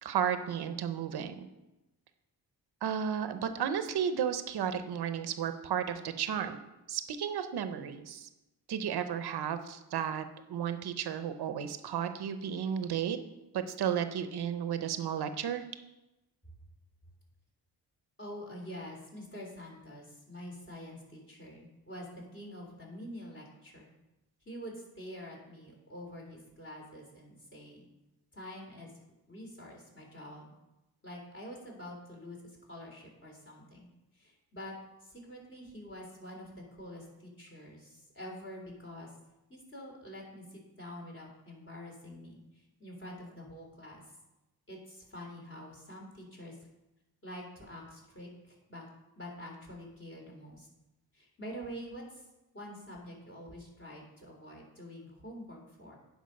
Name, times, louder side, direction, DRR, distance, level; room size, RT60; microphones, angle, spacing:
voice 1, 0.0-1.5 2.8-6.6 6.9-8.3 8.7-13.2 13.5-15.6, right 8 dB, 80° right, 10 dB, 0.8 m, -33 dB
voice 2, 18.2-23.9 24.5-27.9 28.3-28.9 29.3-30.5 31.0-32.4 32.7-33.9 34.2-34.7 35.0-39.1 39.5-42.4 42.8-44.0 44.7-46.6 47.2-48.8 49.2-50.7 51.1-52.0 52.5-56.0, equal, 30° left, -2 dB, 3.5 m, -46 dB
10.5 x 5.1 x 5.3 m, 0.98 s
cardioid pair, 70°, 39 cm